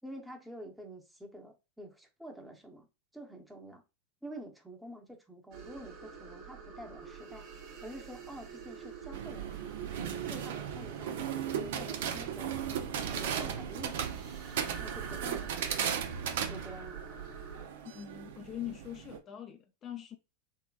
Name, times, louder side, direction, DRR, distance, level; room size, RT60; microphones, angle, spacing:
voice 1, 0.0-2.9 3.1-3.8 4.2-7.5 7.8-9.8 10.3-12.6 13.0-14.3 14.7-16.0 16.5-17.0, equal, 5° right, 0.8 m, -48 dB
ghost sounds, 5.5-17.6, right 7 dB, 50° right, 1.0 m, -45 dB
sound 1, 9.1-19.2, right 8 dB, 70° right, 0.5 m, -37 dB
voice 2, 17.9-20.2, left 11 dB, 35° left, 0.4 m, -42 dB
3.7 x 2.1 x 2.3 m
hypercardioid pair, 100°, 0 cm